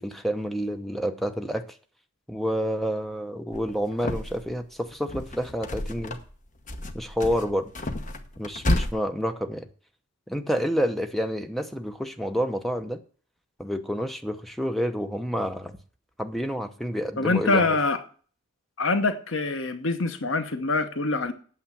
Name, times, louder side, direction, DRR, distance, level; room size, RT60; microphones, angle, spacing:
voice 1, 0.0-1.8 2.3-6.2 6.9-7.7 8.4-9.7 10.3-13.0 13.6-15.8 16.2-17.7, equal, ahead, 0.8 m, -29 dB
sound 1, 3.5-4.6 4.9-6.4 6.7-8.9, left 1 dB, 40° left, 1.0 m, -30 dB
voice 2, 17.2-18.0 18.8-21.3, left 3 dB, 70° left, 1.0 m, -24 dB
8.7 x 7.2 x 7.1 m
head